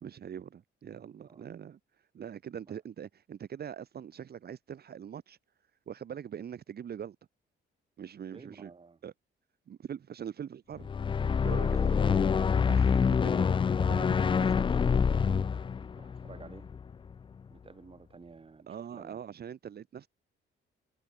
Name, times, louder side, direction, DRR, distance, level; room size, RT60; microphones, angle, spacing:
voice 1, 0.0-1.8 2.1-5.4 5.9-7.2 8.0-8.7 9.0-9.1 9.7-10.9 11.4-12.2 12.7-13.5 13.9-14.1 18.7-20.1, right 8 dB, 55° right, 1.8 m, -42 dB
voice 2, 8.3-9.0 11.9-12.1 13.8-15.4 16.0-16.7 17.5-19.2, right 4 dB, 30° right, 2.6 m, -51 dB
sound 1, 10.8-17.1, left 6 dB, 25° left, 0.4 m, -26 dB
cardioid pair, 90°, 20 cm